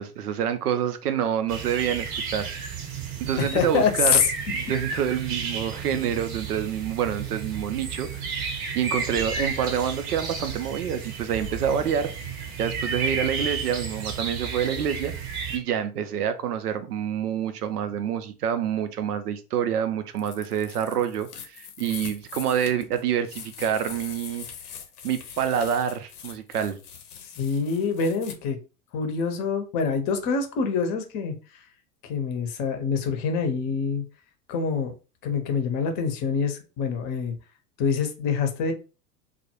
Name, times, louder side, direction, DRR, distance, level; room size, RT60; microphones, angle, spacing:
voice 1, 0.0-2.5 3.2-4.2 4.5-12.1 12.6-24.5 25.0-26.8, right 8 dB, 80° right, 0.5 m, -27 dB
sound 1, 1.5-15.6, right 5 dB, 45° right, 0.7 m, -33 dB
voice 2, 3.4-4.3 27.4-28.6 28.9-31.3 32.1-34.0 34.5-34.9 35.2-37.3 37.8-38.7, left 5 dB, 35° left, 0.7 m, -25 dB
sound 2, 9.0-11.1 11.4-12.1, left 2 dB, ahead, 0.3 m, -44 dB
sound 3, 20.2-28.4, left 7 dB, 75° left, 0.7 m, -42 dB
2.2 x 2.0 x 2.9 m
figure-of-eight pair, 80°, 46 cm